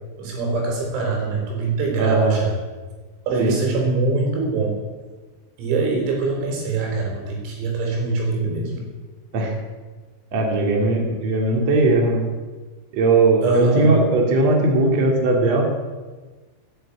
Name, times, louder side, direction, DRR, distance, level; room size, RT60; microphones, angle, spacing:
voice 1, 0.2-2.5 3.3-4.8 5.6-8.8 13.4-13.9, right 3 dB, 90° right, 0 dB, 6.4 m, -23 dB
voice 2, 1.9-2.4 3.4-3.6 9.3-9.5 10.3-12.2 12.9-15.7, right 2 dB, 40° right, 1 dB, 2.9 m, -19 dB
13.5 x 9.9 x 8.6 m, 1.3 s
omnidirectional pair, 5.9 m